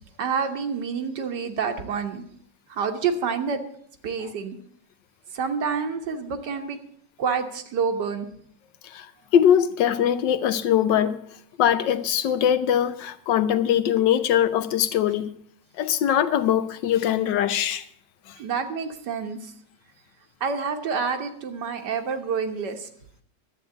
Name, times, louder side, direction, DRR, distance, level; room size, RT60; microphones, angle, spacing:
voice 1, 0.2-2.2 2.7-3.6 4.0-4.6 5.3-6.8 7.2-8.3 18.4-19.5 20.4-22.9, right 6 dB, 75° right, 1.8 m, -28 dB
voice 2, 8.8-11.2 11.6-15.3 15.8-17.9 18.3-18.4, left 10 dB, 85° left, 1.5 m, -22 dB
12.0 x 7.8 x 7.8 m
omnidirectional pair, 1.9 m